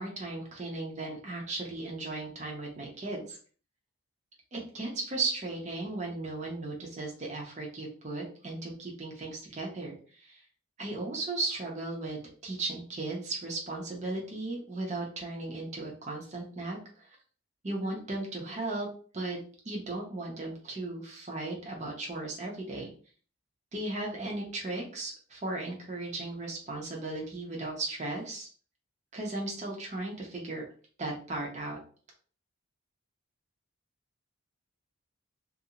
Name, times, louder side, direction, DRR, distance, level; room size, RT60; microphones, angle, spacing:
voice 1, 0.0-3.4 4.5-10.4 10.8-17.1 17.6-18.9 19.1-19.4 19.6-22.9 23.7-28.5 29.1-30.6 31.0-31.8, right 2 dB, 35° right, -1 dB, 0.6 m, -36 dB
2.4 x 2.0 x 2.7 m, 0.42 s
head